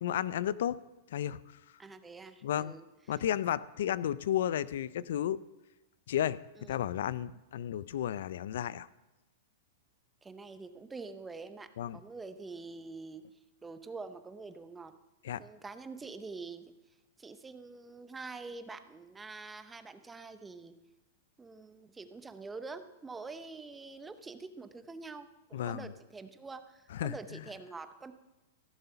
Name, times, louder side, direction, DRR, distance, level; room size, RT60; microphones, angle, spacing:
voice 1, 0.0-0.8 1.1-1.4 1.7-1.8 2.4-2.7 3.1-5.4 6.1-8.9 11.8-12.0 15.2-15.4 25.5-25.9 26.9-27.4, left 10 dB, 70° left, 18 dB, 0.4 m, -33 dB
voice 2, 1.8-3.2 6.6-6.8 10.2-14.9 15.4-16.6 17.2-20.8 21.4-28.1, right 4 dB, 10° right, 10 dB, 0.7 m, -46 dB
15.5 x 6.8 x 5.7 m, 1.1 s
hypercardioid pair, 130°, 0 cm